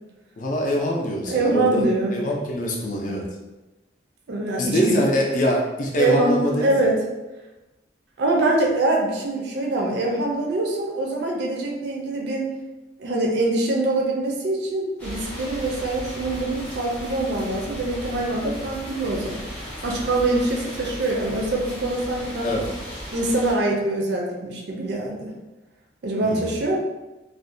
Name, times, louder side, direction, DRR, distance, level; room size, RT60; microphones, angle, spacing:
voice 1, 0.4-1.8 2.1-3.2 4.6-6.7 22.4-22.6 26.2-26.5, left 1 dB, 45° left, 0 dB, 0.4 m, -24 dB
voice 2, 1.3-2.2 4.3-5.0 5.9-7.0 8.2-12.5 13.0-19.5 19.8-22.5 23.1-25.3 26.0-26.8, right 2 dB, 60° right, -1 dB, 0.4 m, -24 dB
sound 1, 15.0-23.5, equal, 10° left, 0.7 m, -36 dB
2.4 x 2.1 x 2.6 m, 1.1 s
head